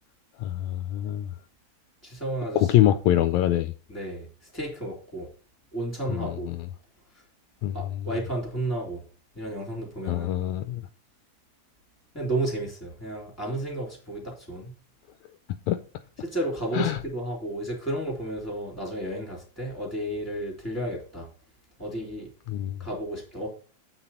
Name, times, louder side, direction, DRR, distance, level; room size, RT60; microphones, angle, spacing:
voice 1, 0.4-1.3 2.6-3.7 6.1-6.6 7.6-7.8 10.1-10.8 15.7-15.8 16.7-17.0 22.5-22.8, left 13 dB, 80° left, 1.8 m, -24 dB
voice 2, 2.0-2.9 3.9-5.3 5.7-6.5 7.7-9.0 9.3-10.3 12.1-14.8 16.2-21.3 21.8-22.3 22.8-23.5, right 1 dB, 5° left, 3.3 m, -32 dB
8.7 x 6.1 x 4.3 m
omnidirectional pair, 3.4 m